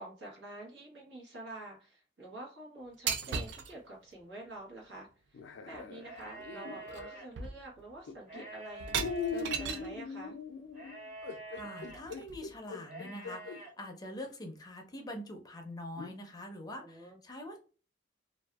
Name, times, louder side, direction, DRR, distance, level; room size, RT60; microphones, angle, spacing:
voice 1, 0.0-10.4 16.8-17.2, right 2 dB, 80° right, -3 dB, 1.2 m, -48 dB
sound 1, 3.1-3.7 5.7-5.8 6.2-6.5 6.9-7.1 7.4-7.9 8.8-10.0 11.6-12.6, right 6 dB, 65° right, 0.3 m, -37 dB
sound 2, 5.3-7.2 8.1-8.4 8.9-13.6 14.2-14.3 16.0-16.2, left 5 dB, 80° left, 0.4 m, -41 dB
sound 3, 6.0-7.3 8.2-9.9 10.7-12.0 12.8-13.7, right 2 dB, 45° right, 1.3 m, -47 dB
voice 2, 11.6-17.6, left 1 dB, 20° left, 3 dB, 0.5 m, -44 dB
2.6 x 2.3 x 2.3 m, 0.36 s
head